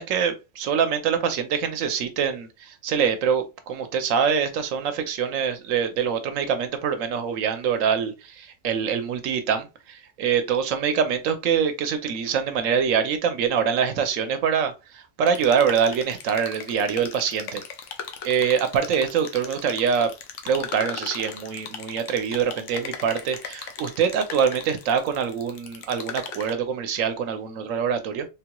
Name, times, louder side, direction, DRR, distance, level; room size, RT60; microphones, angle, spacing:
voice 1, 0.0-17.6 18.2-20.1 20.4-28.3, right 7 dB, 80° right, 1.0 m, -24 dB
sound 1, 15.3-26.5, left 7 dB, 70° left, 0.9 m, -38 dB
3.7 x 2.9 x 2.2 m
omnidirectional pair, 1.4 m